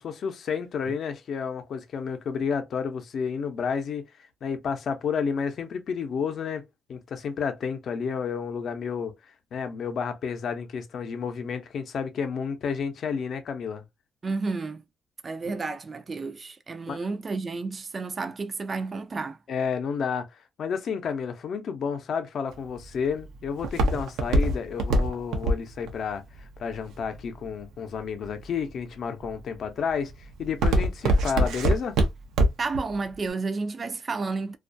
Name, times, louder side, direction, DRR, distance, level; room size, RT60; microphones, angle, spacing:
voice 1, 0.0-4.0 4.4-9.1 9.5-13.8 15.4-15.5 16.9-17.0 19.5-20.3 20.6-26.2 26.6-32.0, left 6 dB, 60° left, 0.6 m, -31 dB
voice 2, 14.2-14.8 15.2-19.4 32.6-34.6, right 4 dB, 35° right, 0.4 m, -31 dB
Walk footsteps, 22.5-27.6 28.2-28.7 29.2-29.6 29.9-32.8 33.1-33.2, right 1 dB, 85° right, 0.6 m, -23 dB
2.3 x 2.2 x 2.5 m
cardioid pair, 90°, 0 cm